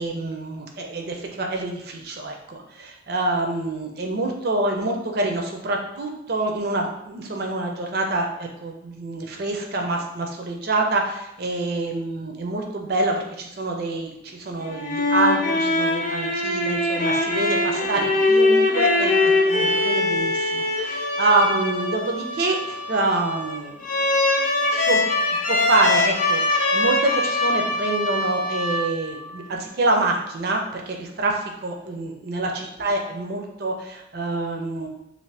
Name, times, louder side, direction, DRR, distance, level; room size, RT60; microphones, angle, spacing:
voice 1, 0.0-19.1 19.4-24.0 24.7-25.0 25.5-34.9, right 2 dB, 50° right, 2 dB, 0.5 m, -26 dB
sound 1, 14.6-29.2, left 2 dB, 40° left, 0.5 m, -22 dB
2.7 x 2.5 x 3.3 m, 0.83 s
head